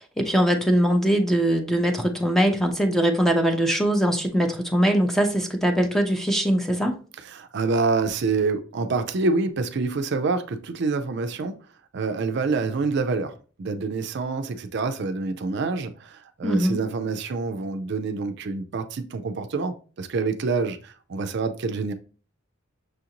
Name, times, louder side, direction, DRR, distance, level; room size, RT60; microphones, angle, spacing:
voice 1, 0.0-7.0 16.4-16.8, equal, ahead, 0.5 m, -22 dB
voice 2, 7.2-11.6 11.9-21.9, right 4 dB, 60° right, 0.4 m, -27 dB
6.3 x 2.5 x 2.8 m
head